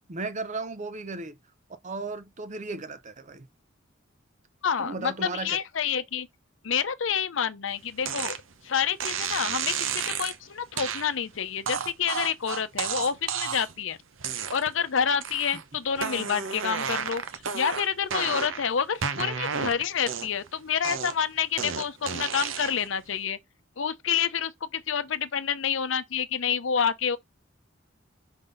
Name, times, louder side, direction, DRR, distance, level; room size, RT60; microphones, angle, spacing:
voice 1, 0.1-1.4 1.8-3.5 4.8-5.6, right 3 dB, 40° right, 0.7 m, -35 dB
voice 2, 4.6-6.3 6.6-8.4 8.6-14.0 14.5-17.2 17.5-23.4 23.8-27.2, left 7 dB, 70° left, 0.7 m, -28 dB
sound 1, 8.1-8.4 9.0-10.4 10.8-11.1 11.7-13.8 14.2-14.8 15.2-15.6 16.0-18.7 19.0-20.5 20.8-22.9, right 6 dB, 85° right, 0.8 m, -32 dB
5.2 x 3.9 x 5.4 m
head